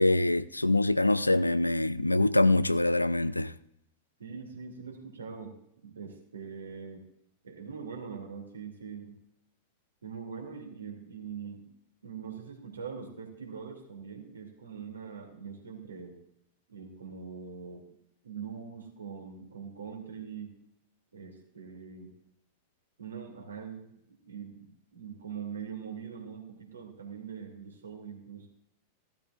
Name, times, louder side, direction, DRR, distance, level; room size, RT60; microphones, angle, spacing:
voice 1, 0.0-3.5, left 2 dB, 85° left, 0.4 m, -24 dB
voice 2, 4.2-7.0 7.4-9.2 10.0-11.7 12.0-16.2 16.7-17.9 18.2-20.6 21.1-22.2 23.0-24.0 24.2-28.5, right 6 dB, 70° right, 2.6 m, -42 dB
15.5 x 12.0 x 2.5 m
figure-of-eight pair, 90°, 0 cm